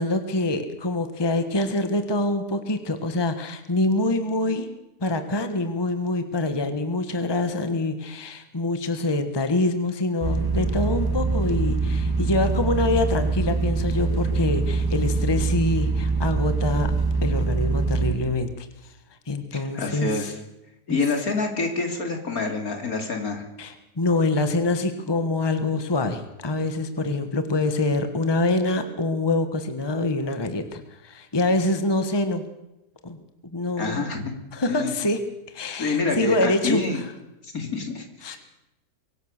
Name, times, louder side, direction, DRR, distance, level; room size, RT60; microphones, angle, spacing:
voice 1, 0.0-4.7 5.0-16.9 17.2-18.9 19.3-20.3 20.9-21.0 23.6-32.5 33.0-33.2 33.5-34.0 34.5-35.2 35.5-37.1 38.2-38.4, left 2 dB, 15° left, 8 dB, 1.3 m, -25 dB
sound 1, 10.2-18.1, right 3 dB, 15° right, 2.0 m, -24 dB
voice 2, 19.5-20.3 20.9-23.5 33.8-34.2 34.7-34.9 35.8-37.0 37.4-38.4, left 3 dB, 60° left, 4 dB, 3.4 m, -27 dB
24.0 x 17.0 x 6.7 m, 0.93 s
omnidirectional pair, 1.8 m